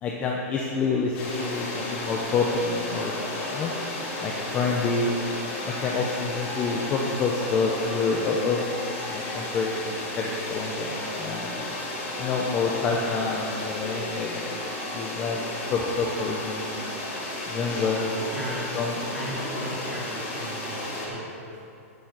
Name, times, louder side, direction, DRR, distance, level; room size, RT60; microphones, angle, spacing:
voice 1, 0.0-3.1 3.5-3.7 4.2-5.1 5.6-8.6 9.1-11.5 12.2-14.5 14.9-15.4 15.7-16.8 17.5-18.1 18.7-18.9, left 4 dB, 15° left, -1 dB, 0.7 m, -27 dB
sound 1, 1.1-21.1, left 1 dB, 35° left, 3.0 m, -33 dB
voice 2, 18.3-18.7 19.1-21.7, equal, 10° right, -8 dB, 2.8 m, -37 dB
9.6 x 6.8 x 8.1 m, 2.7 s
supercardioid pair, 175°, 8 cm